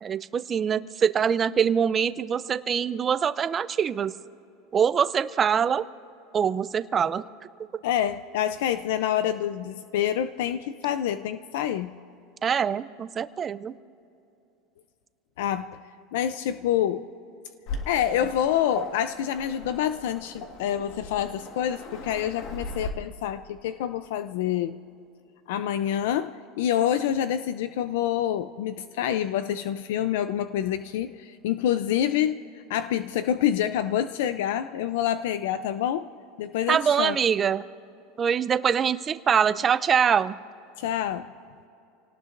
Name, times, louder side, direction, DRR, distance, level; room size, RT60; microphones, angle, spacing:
voice 1, 0.0-4.1 4.7-5.8 6.3-7.2 12.4-13.7 36.7-37.6 38.2-40.4, right 7 dB, 20° right, 13 dB, 0.4 m, -24 dB
voice 2, 7.8-11.9 15.4-15.7 16.1-17.1 17.9-24.8 25.5-32.4 32.7-36.1 36.4-37.2 40.8-41.3, left 10 dB, 75° left, 11 dB, 0.5 m, -27 dB
Waves surf, 17.7-22.9, left 3 dB, 45° left, 1.6 m, -38 dB
28.5 x 18.5 x 2.6 m, 2.7 s
supercardioid pair, 165°, 0 cm